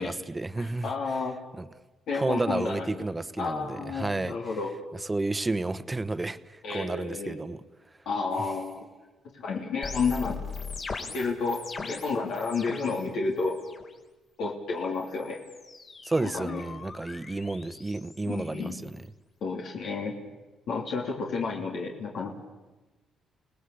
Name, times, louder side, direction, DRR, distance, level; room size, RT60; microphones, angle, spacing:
voice 1, 0.0-0.9 1.6-1.7 2.1-4.4 5.1-7.6 16.0-19.1, right 2 dB, 20° right, 12 dB, 1.2 m, -31 dB
voice 2, 0.6-1.4 2.1-3.1 3.4-4.7 6.6-7.4 8.0-8.9 9.3-10.4 11.1-13.6 14.4-15.4 16.2-16.6 18.3-18.8 19.4-20.1 20.7-22.4, left 4 dB, 70° left, -1 dB, 3.4 m, -31 dB
sound 1, 9.8-13.1 13.4-13.9 14.9-19.1, left 4 dB, 45° left, 4.0 m, -41 dB
29.5 x 19.0 x 8.6 m, 1.2 s
cardioid pair, 90°, 0 cm